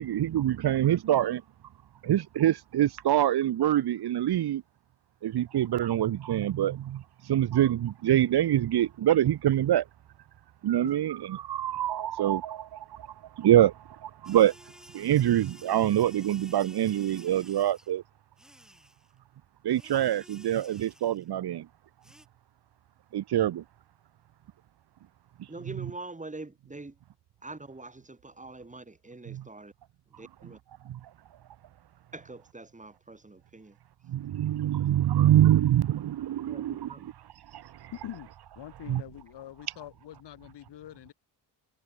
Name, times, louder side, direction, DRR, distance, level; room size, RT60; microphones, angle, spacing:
voice 1, 0.0-1.4 2.0-4.6 5.2-9.8 10.6-13.1 13.4-14.5 14.9-18.0 19.6-21.7 23.1-23.6 25.8-25.9 29.3-29.4 30.9-31.0 34.1-37.1 37.5-37.9 38.9-39.0, right 12 dB, 60° right, 2.1 m, -25 dB
sound 1, 14.2-17.9 18.4-19.1 19.7-21.3 22.0-22.3, equal, ahead, 8.0 m, -53 dB
voice 2, 25.5-27.0 27.4-29.7 30.2-30.6 32.1-33.8 35.2-35.4 36.4-37.1, right 2 dB, 15° right, 7.8 m, -44 dB
voice 3, 37.9-38.3 38.6-41.1, left 12 dB, 70° left, 7.0 m, -44 dB
supercardioid pair, 75°, 43 cm